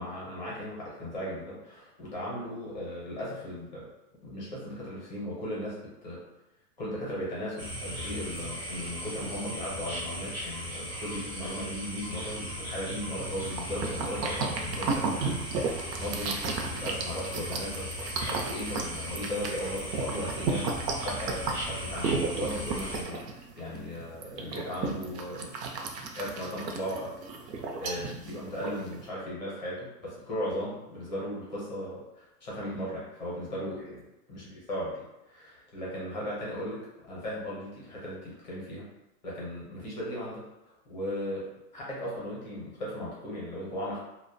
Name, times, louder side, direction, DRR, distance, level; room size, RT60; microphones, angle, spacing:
voice 1, 0.0-3.9 4.2-6.2 6.8-15.4 15.9-17.9 18.3-23.3 23.6-25.5 26.1-27.1 27.4-34.0 34.3-38.9 39.2-40.4 40.9-41.5 41.7-44.0, equal, 30° left, -6 dB, 0.5 m, -37 dB
sound 1, 7.6-23.0, equal, 25° right, 0.4 m, -37 dB
sound 2, 13.3-29.1, right 4 dB, 85° right, 0.6 m, -34 dB
2.3 x 2.1 x 2.5 m, 0.96 s
supercardioid pair, 175°, 49 cm